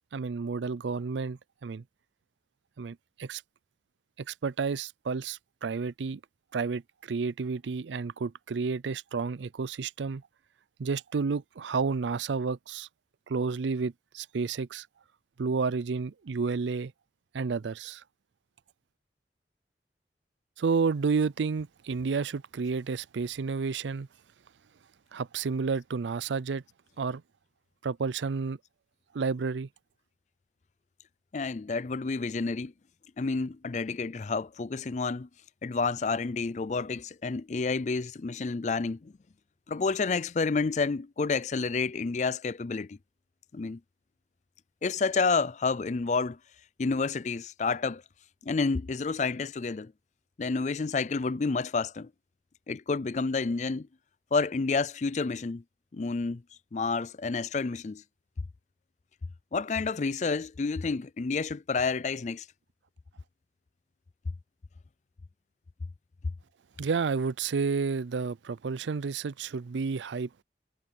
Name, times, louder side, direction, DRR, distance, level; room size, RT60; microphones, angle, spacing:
voice 1, 0.1-1.8 2.8-3.4 4.2-6.2 6.5-10.2 10.8-12.9 13.3-14.9 15.4-16.9 17.3-18.0 20.6-24.1 25.1-26.6 27.0-27.2 27.8-28.6 29.1-29.7 66.8-70.3, right 5 dB, 90° right, 0.5 m, -31 dB
voice 2, 31.3-32.7 33.2-35.3 35.6-39.1 39.7-43.0 43.5-43.8 44.8-46.4 46.8-48.0 48.4-49.9 50.4-52.1 52.7-53.9 54.3-55.6 55.9-56.4 56.7-58.0 59.5-62.5, left 4 dB, 40° left, 0.4 m, -29 dB
head